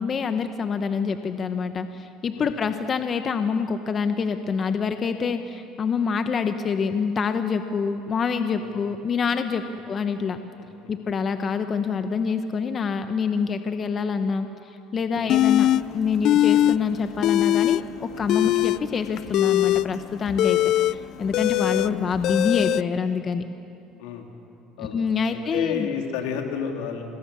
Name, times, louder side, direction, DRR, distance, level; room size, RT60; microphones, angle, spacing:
voice 1, 0.0-10.4 10.9-15.7 15.9-23.4 24.8-25.9, left 5 dB, 35° left, 8 dB, 1.0 m, -26 dB
sound 1, 15.3-15.8 16.2-16.8 17.0-17.8 18.2-22.8, left 13 dB, 60° left, 0.4 m, -21 dB
voice 2, 25.3-27.0, left 7 dB, 85° left, 3 dB, 3.0 m, -31 dB
27.0 x 20.5 x 7.0 m, 2.7 s
supercardioid pair, 110°, 0 cm